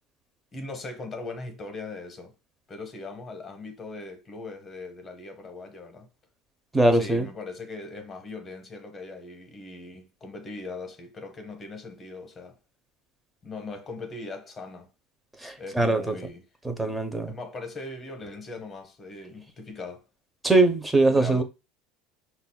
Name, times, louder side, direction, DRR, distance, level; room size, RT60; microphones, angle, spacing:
voice 1, 0.5-2.3 2.7-6.1 6.9-12.6 13.4-14.9 15.6-16.4 17.2-20.0 21.1-21.4, left 3 dB, 20° left, 0.9 m, -39 dB
voice 2, 6.7-7.3 15.4-16.1 16.6-17.3 20.4-21.4, right 2 dB, 5° right, 0.6 m, -22 dB
5.4 x 2.3 x 2.2 m
supercardioid pair, 135°, 0 cm